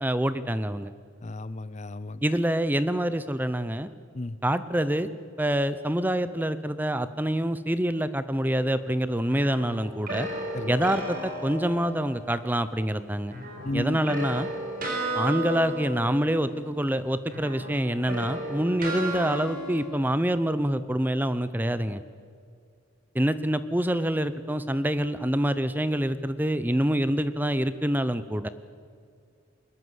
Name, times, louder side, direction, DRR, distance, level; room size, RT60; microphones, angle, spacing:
voice 1, 0.0-0.9 2.2-3.9 4.4-5.1 5.4-10.3 10.7-13.3 13.7-14.5 15.1-22.0 23.1-28.5, right 1 dB, 10° right, 13 dB, 0.6 m, -26 dB
voice 2, 1.2-2.2 4.1-4.4 10.5-10.7 13.6-14.0, left 2 dB, 35° left, 16 dB, 0.5 m, -33 dB
sound 1, 9.3-12.4 13.3-17.0 17.2-19.8, right 1 dB, 40° right, 4.7 m, -34 dB
22.5 x 20.0 x 8.1 m, 2.2 s
head